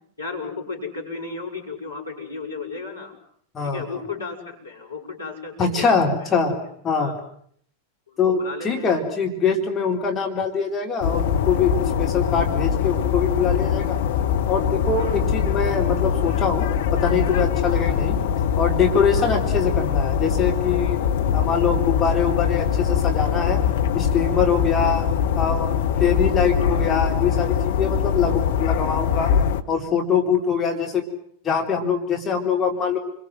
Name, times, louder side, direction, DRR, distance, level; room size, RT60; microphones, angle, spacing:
voice 1, 0.2-3.1 3.6-6.6 6.9-7.2 8.1-9.0 14.9-15.2 17.7-17.9 19.3-19.4 24.7-25.1, left 4 dB, 80° left, 0 dB, 6.7 m, -34 dB
voice 2, 5.6-6.5 6.8-7.1 8.2-8.4 8.6-14.0 14.5-18.2 18.6-21.0 21.3-23.6 23.9-25.0 25.4-29.3 29.7-31.0 31.4-33.0, left 6 dB, 20° left, 1 dB, 3.9 m, -23 dB
sound 1, 11.0-29.6, left 8 dB, 55° left, 1.5 m, -22 dB
29.5 x 22.5 x 7.8 m, 0.66 s
figure-of-eight pair, 90°, 0 cm